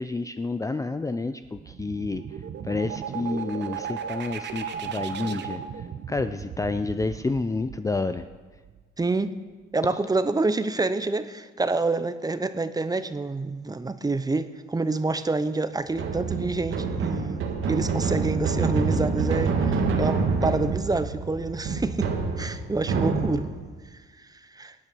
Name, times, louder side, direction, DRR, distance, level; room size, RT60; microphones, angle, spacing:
voice 1, 0.0-2.2 2.6-5.6 6.1-8.2, left 3 dB, 15° left, 10 dB, 0.5 m, -29 dB
sound 1, 1.4-9.1, right 8 dB, 60° right, 1.0 m, -36 dB
voice 2, 9.0-9.3 9.7-17.4 17.7-22.1 22.4-23.5 24.5-24.7, right 3 dB, 20° right, 12 dB, 0.8 m, -27 dB
sound 2, 15.9-23.7, right 4 dB, 80° right, 1.8 m, -27 dB
19.5 x 8.8 x 6.2 m, 1.4 s
cardioid pair, 90°, 20 cm